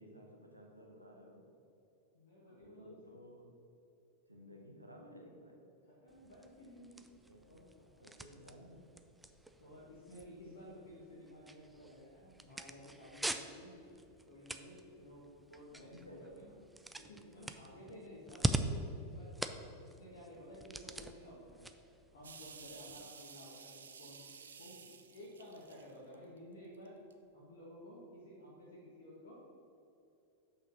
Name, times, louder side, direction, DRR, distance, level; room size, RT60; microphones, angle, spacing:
voice 1, 0.0-1.4 2.5-3.5 4.3-5.6 7.3-7.7 8.0-8.9 15.8-16.2 22.7-23.0, equal, 85° right, 0 dB, 1.2 m, -56 dB
voice 2, 2.1-3.1 6.0-7.0 7.4-8.1 9.6-13.8 14.3-15.2 15.5-16.5 16.9-21.7 22.1-24.2 24.6-24.8 25.1-27.0 27.3-29.3, equal, 60° left, -5 dB, 1.5 m, -54 dB
sound 1, 6.1-23.0, right 1 dB, 5° right, 0.4 m, -44 dB
sound 2, 22.2-26.4 26.8-27.1, right 6 dB, 70° right, 0.5 m, -54 dB
6.5 x 5.6 x 5.9 m, 2.8 s
figure-of-eight pair, 90°, 0 cm